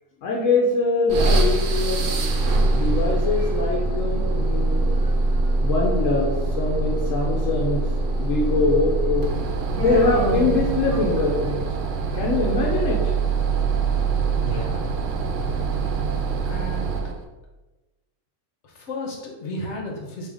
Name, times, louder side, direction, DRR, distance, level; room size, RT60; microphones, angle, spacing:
voice 1, 0.2-2.2 2.7-5.0 5.3-7.8 8.2-9.3 9.7-11.6 12.1-13.0 14.5-14.6, left 3 dB, 80° left, -2 dB, 1.1 m, -23 dB
sound 1, 1.1-17.2, right 3 dB, 75° right, 1.0 m, -23 dB
Human voice, 9.8-11.5, left 3 dB, 30° right, 1.1 m, -27 dB
voice 2, 14.1-14.9 16.5-17.0 18.6-20.3, equal, 65° left, -1 dB, 1.2 m, -33 dB
5.1 x 2.9 x 3.4 m, 1.1 s
omnidirectional pair, 1.3 m